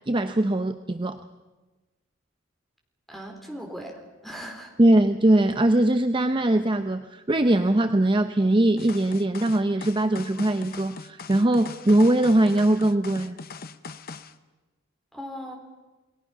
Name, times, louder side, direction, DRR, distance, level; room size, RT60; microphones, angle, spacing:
voice 1, 0.1-1.2 4.8-13.4, right 1 dB, 25° right, 8 dB, 0.7 m, -21 dB
voice 2, 3.1-4.7 15.1-15.6, equal, ahead, 2 dB, 3.7 m, -38 dB
sound 1, 8.8-14.3, left 4 dB, 45° left, 0.8 m, -40 dB
29.5 x 20.0 x 5.8 m, 1.2 s
head